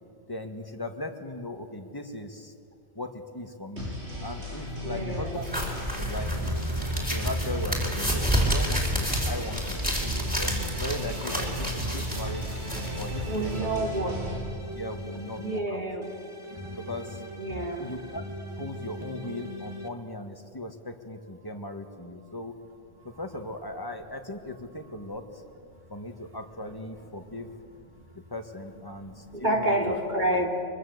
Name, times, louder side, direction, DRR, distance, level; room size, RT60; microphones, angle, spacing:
voice 1, 0.3-2.5 3.0-3.9 4.2-5.4 6.0-6.6 7.1-9.8 10.4-12.5 13.0-13.7 14.8-15.8 16.8-17.2 17.8-18.2 18.6-22.5 23.0-25.2 25.9-27.5 28.3-29.8, left 1 dB, 20° left, 5 dB, 1.8 m, -38 dB
sound 1, 3.8-14.4, left 1 dB, 80° right, 8.6 m, -36 dB
voice 2, 4.8-5.4 13.2-14.2 15.4-16.1 17.4-17.9 23.0-23.1 29.0-30.5, right 1 dB, 45° right, 0 dB, 3.3 m, -29 dB
sound 2, 5.4-13.6, equal, 10° right, 5.0 m, -30 dB
sound 3, 6.2-9.6 10.0-15.6 16.0-19.9, right 1 dB, 25° right, 2.2 m, -37 dB
25.0 x 24.0 x 8.1 m, 2.4 s
omnidirectional pair, 1.1 m